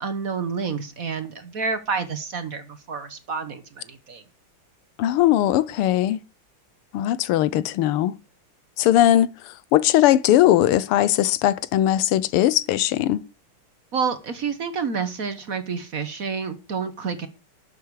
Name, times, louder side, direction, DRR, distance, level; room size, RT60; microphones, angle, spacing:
voice 1, 0.0-4.2 13.9-17.3, right 5 dB, 50° right, 1.3 m, -29 dB
voice 2, 5.0-6.2 6.9-8.1 8.8-13.2, left 13 dB, 90° left, 1.7 m, -19 dB
12.0 x 8.4 x 4.8 m
omnidirectional pair, 2.4 m